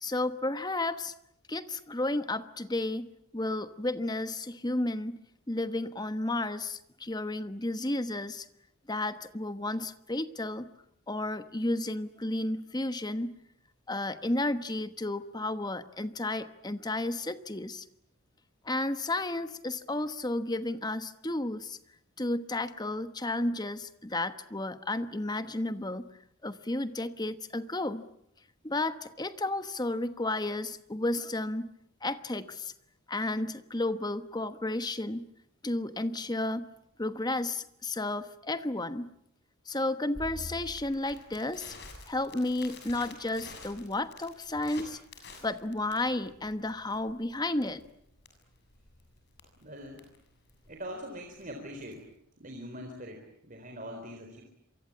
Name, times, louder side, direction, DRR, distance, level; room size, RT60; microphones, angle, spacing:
voice 1, 0.0-1.1 1.5-3.1 3.3-5.2 5.5-8.5 8.9-10.7 11.1-13.3 13.9-17.9 18.6-21.8 22.2-26.1 26.4-28.0 28.6-31.7 32.0-32.7 33.1-35.3 35.6-36.7 37.0-39.1 39.7-41.7 42.1-45.0 45.4-47.8, left 2 dB, 20° left, 11 dB, 1.1 m, -32 dB
Crackle, 40.1-52.1, left 2 dB, 50° left, 7.1 m, -49 dB
voice 2, 49.6-50.1 50.7-52.0 52.4-54.4, equal, 40° right, 3 dB, 3.9 m, -42 dB
27.5 x 24.0 x 8.7 m, 0.74 s
head